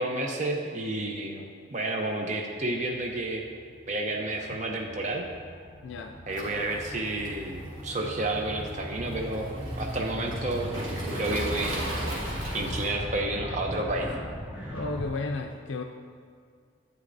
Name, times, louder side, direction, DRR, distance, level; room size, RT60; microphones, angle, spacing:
voice 1, 0.0-3.4 3.9-5.3 6.3-12.1 12.5-14.2, right 2 dB, 35° right, 1 dB, 0.6 m, -31 dB
sound 1, 2.6-15.1, equal, 10° right, 1.5 m, -38 dB
voice 2, 5.8-6.2 14.7-15.8, left 3 dB, 75° left, 4 dB, 0.4 m, -33 dB
Waves surf, 6.3-12.9, right 1 dB, 90° right, 1.6 m, -38 dB
9.7 x 9.2 x 2.6 m, 2.1 s
head